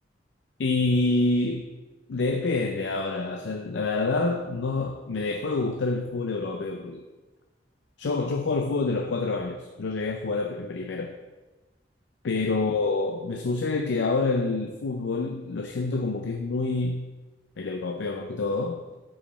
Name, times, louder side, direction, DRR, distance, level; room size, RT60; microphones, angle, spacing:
voice 1, 0.6-1.7 2.1-7.0 8.0-11.2 12.2-17.1 17.6-18.8, left 3 dB, 85° left, 4 dB, 0.5 m, -27 dB
5.0 x 4.9 x 5.6 m, 1.2 s
head